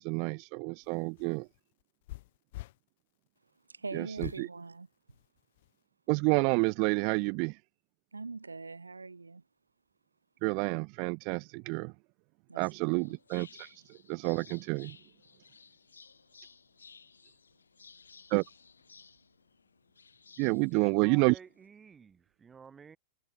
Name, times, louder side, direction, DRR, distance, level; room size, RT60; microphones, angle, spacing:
voice 1, 0.0-1.5 3.9-4.5 6.1-7.6 10.4-11.9 12.5-15.0 18.3-18.4 20.4-21.4, right 37 dB, 45° right, 0.3 m, -29 dB
sound 1, 0.8-2.8 4.2-4.5 5.1-5.7, left 18 dB, 55° left, 3.2 m, -44 dB
voice 2, 3.7-4.9 8.1-9.4 12.5-12.6 13.0-13.1, right 3 dB, 85° right, 1.2 m, -42 dB
sound 2, 12.7-21.7, left 5 dB, 80° left, 4.4 m, -57 dB
voice 3, 20.7-23.0, right 6 dB, 20° right, 7.4 m, -53 dB
figure-of-eight pair, 100°, 0 cm